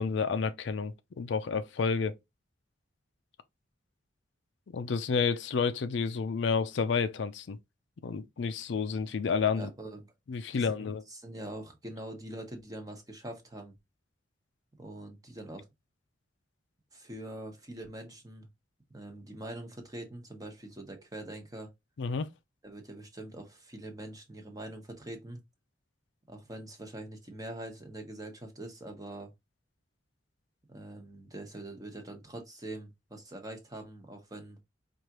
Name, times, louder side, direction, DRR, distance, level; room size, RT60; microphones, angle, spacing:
voice 1, 0.0-2.1 4.7-7.6 8.0-9.7 10.3-11.0 22.0-22.3, left 5 dB, 65° left, 0.4 m, -30 dB
voice 2, 9.5-10.1 10.5-13.7 14.8-15.6 16.9-18.5 18.9-21.7 22.6-25.4 26.3-29.3 30.7-34.6, right 1 dB, 20° right, 1.0 m, -44 dB
4.8 x 2.5 x 2.9 m
head